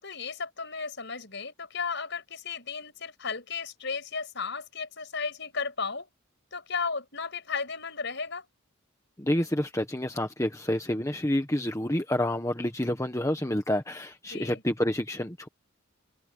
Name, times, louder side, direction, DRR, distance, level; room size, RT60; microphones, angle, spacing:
voice 1, 0.0-6.1 6.5-8.4 14.3-14.6, left 5 dB, 55° left, 7.3 m, -34 dB
voice 2, 9.2-15.5, left 1 dB, 15° left, 1.3 m, -28 dB
head